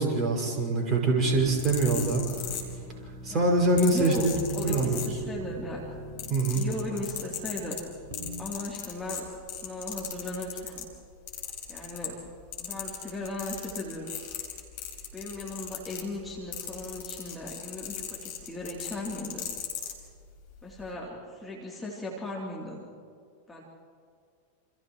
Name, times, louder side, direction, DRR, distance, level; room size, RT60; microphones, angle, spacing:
voice 1, 0.0-2.2 3.2-4.3 4.6-5.0 6.3-6.6, right 2 dB, 25° right, 0 dB, 6.5 m, -24 dB
sound 1, 1.2-8.4, right 1 dB, 50° right, 4.5 m, -40 dB
sound 2, 1.4-3.1 3.8-5.5 5.8-10.9 11.3-12.3 12.5-20.0 20.7-20.9, left 9 dB, 50° left, 4.1 m, -37 dB
voice 2, 3.8-6.0 6.5-7.8 8.4-10.9 11.7-12.2 12.6-14.1 15.1-19.5 20.6-22.8 23.5-23.6, left 1 dB, 5° left, -5 dB, 3.5 m, -37 dB
28.5 x 28.5 x 3.3 m, 2.2 s
figure-of-eight pair, 90°, 0 cm